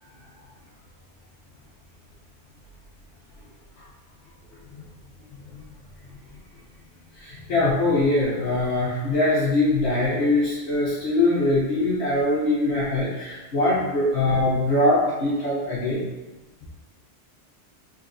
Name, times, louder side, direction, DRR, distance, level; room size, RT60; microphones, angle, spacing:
voice 1, 7.2-16.0, left 2 dB, 60° left, -10 dB, 1.0 m, -22 dB
3.8 x 3.0 x 2.5 m, 1.1 s
omnidirectional pair, 1.3 m